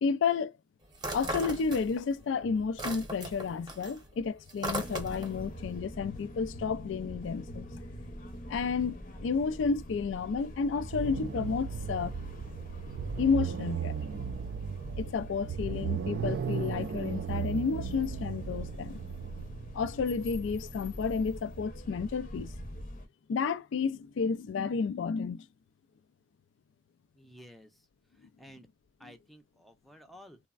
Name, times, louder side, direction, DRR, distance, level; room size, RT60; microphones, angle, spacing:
voice 1, 0.0-0.5 1.1-7.7 8.5-9.0 9.2-12.1 13.2-14.0 15.0-19.0 19.7-22.5 23.3-25.5 29.0-29.1, left 5 dB, 80° left, 0.3 m, -31 dB
sound 1, 1.0-2.2 2.5-5.4, right 1 dB, 25° right, 0.8 m, -37 dB
sound 2, 4.6-23.1, equal, 45° left, 0.7 m, -44 dB
sound 3, 10.9-20.3, right 7 dB, 60° right, 0.3 m, -36 dB
voice 2, 27.2-27.9 28.2-28.7 29.0-30.4, equal, ahead, 0.5 m, -53 dB
3.3 x 2.0 x 2.3 m
head